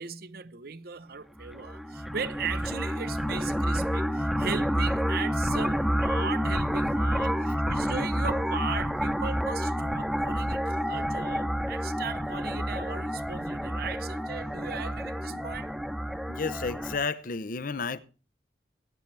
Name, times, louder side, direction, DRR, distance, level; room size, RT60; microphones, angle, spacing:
voice 1, 0.0-15.7, right 6 dB, 55° right, 0.7 m, -38 dB
sound 1, 1.4-17.0, equal, ahead, 0.9 m, -29 dB
voice 2, 16.3-18.0, left 4 dB, 50° left, 0.7 m, -32 dB
18.0 x 10.5 x 3.3 m
head